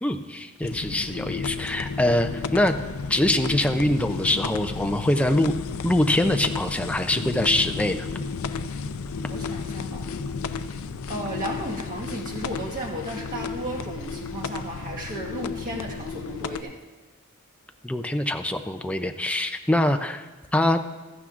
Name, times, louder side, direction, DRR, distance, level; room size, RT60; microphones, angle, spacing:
voice 1, 0.0-2.7 3.1-5.5 5.8-8.1 17.8-20.3 20.5-20.8, left 1 dB, 5° left, 6 dB, 0.4 m, -23 dB
sound 1, 0.6-16.6, left 5 dB, 70° left, 0.5 m, -33 dB
voice 2, 9.3-10.1 11.1-16.7, right 1 dB, 40° right, -3 dB, 1.5 m, -34 dB
16.0 x 13.5 x 2.5 m, 1.2 s
head